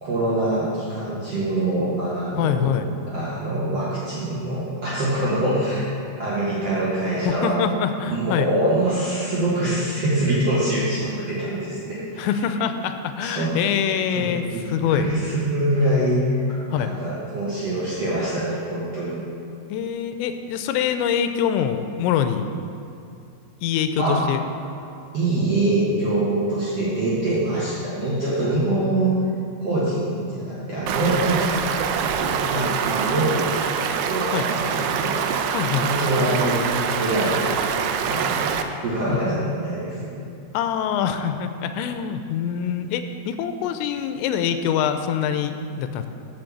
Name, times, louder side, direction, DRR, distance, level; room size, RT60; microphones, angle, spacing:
voice 1, 0.0-2.7 3.1-5.9 6.2-7.6 8.1-12.3 13.2-13.5 14.1-14.6 14.9-16.5 16.7-19.2 24.0-24.3 25.1-29.1 29.6-33.6 34.0-35.2 35.8-36.7 37.0-37.4 38.0-38.5 38.8-40.0, right 1 dB, 60° right, -9 dB, 1.7 m, -24 dB
voice 2, 2.4-2.9 7.3-8.5 12.2-15.1 16.7-16.9 19.7-22.5 23.6-24.4 34.3-34.5 35.5-35.9 39.1-39.2 40.5-46.1, left 8 dB, 90° left, 8 dB, 2.9 m, -24 dB
Stream, 30.9-38.6, right 7 dB, 85° right, 2.4 m, -25 dB
7.7 x 6.7 x 7.2 m, 2.6 s
omnidirectional pair, 5.1 m